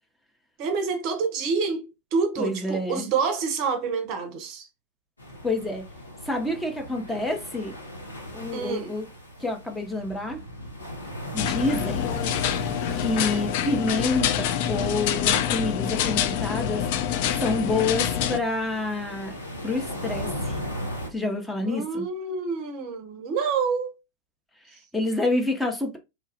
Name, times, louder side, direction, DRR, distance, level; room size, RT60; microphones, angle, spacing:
voice 1, 0.6-4.7 8.5-8.9 21.7-23.9, right 5 dB, 45° right, 0.6 m, -27 dB
voice 2, 2.4-3.1 5.4-5.8 6.2-7.8 8.3-9.1 9.4-10.4 11.3-12.1 12.9-16.8 17.4-19.4 19.6-20.6 21.1-22.0 24.7-26.0, left 2 dB, 5° left, 0.6 m, -28 dB
sound 1, 5.2-21.1, equal, 80° left, 0.8 m, -38 dB
sound 2, 11.4-18.4, left 9 dB, 50° left, 0.3 m, -26 dB
3.0 x 2.3 x 2.6 m
figure-of-eight pair, 90°, 0 cm